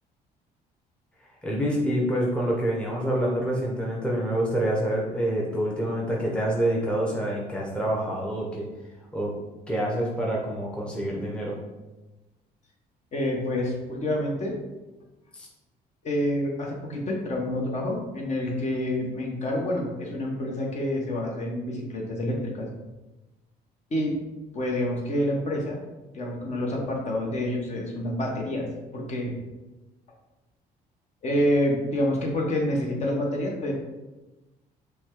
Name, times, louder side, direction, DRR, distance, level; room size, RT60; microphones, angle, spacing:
voice 1, 1.4-8.7 9.1-9.3 9.7-11.6 15.3-15.5, right 1 dB, 5° left, -3 dB, 0.9 m, -27 dB
voice 2, 13.1-14.5 16.0-22.7 23.9-24.1 24.5-25.8 26.1-28.7 28.9-29.3 31.2-33.7, left 1 dB, 45° left, -1 dB, 1.2 m, -27 dB
5.9 x 2.3 x 3.7 m, 1.1 s
cardioid pair, 110°, 17 cm